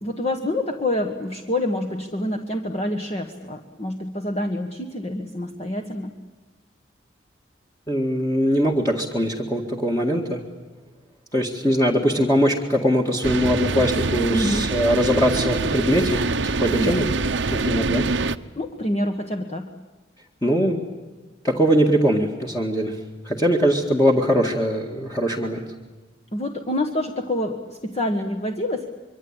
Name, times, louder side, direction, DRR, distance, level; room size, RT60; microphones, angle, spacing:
voice 1, 0.0-6.1 14.3-14.7 16.7-17.0 18.6-19.7 26.3-28.9, left 1 dB, 35° left, 4 dB, 1.5 m, -27 dB
voice 2, 7.9-10.4 11.3-17.1 17.5-18.1 20.4-20.8 21.4-23.0 23.2-25.6, equal, 15° left, -1 dB, 1.9 m, -21 dB
sound 1, 13.2-18.4, right 3 dB, 75° right, 0.9 m, -24 dB
25.5 x 24.0 x 8.9 m, 1.3 s
head